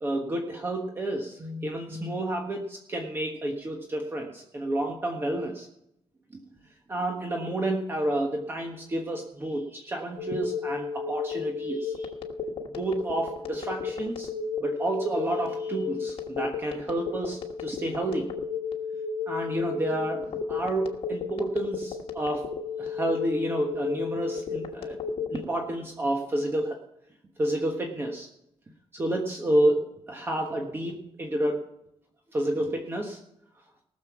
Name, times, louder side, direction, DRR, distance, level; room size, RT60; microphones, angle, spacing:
voice 1, 0.0-5.7 6.3-6.4 6.9-12.1 12.7-14.3 14.6-18.3 19.3-22.5 22.8-25.0 25.3-26.8 27.4-28.3 28.9-31.6 32.3-33.2, right 1 dB, 25° right, 2 dB, 1.3 m, -30 dB
Telephone, 10.2-25.4, left 5 dB, 65° left, 1.3 m, -33 dB
18.5 x 6.8 x 5.9 m, 0.80 s
wide cardioid pair, 160°, 10 cm